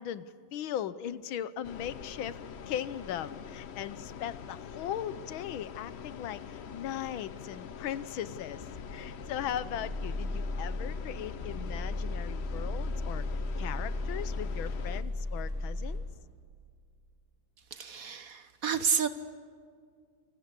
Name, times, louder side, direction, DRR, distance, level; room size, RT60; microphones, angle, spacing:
voice 1, 0.0-2.4 2.7-13.2 13.6-16.0, left 10 dB, 85° left, 15 dB, 1.7 m, -38 dB
sound 1, 1.6-15.0, left 7 dB, 60° left, 0.7 m, -45 dB
sound 2, 8.6-16.0, left 2 dB, 20° right, 8.1 m, -35 dB
voice 2, 17.7-19.1, right 6 dB, 50° right, 11 dB, 1.3 m, -30 dB
28.5 x 24.0 x 8.3 m, 2.1 s
omnidirectional pair, 2.1 m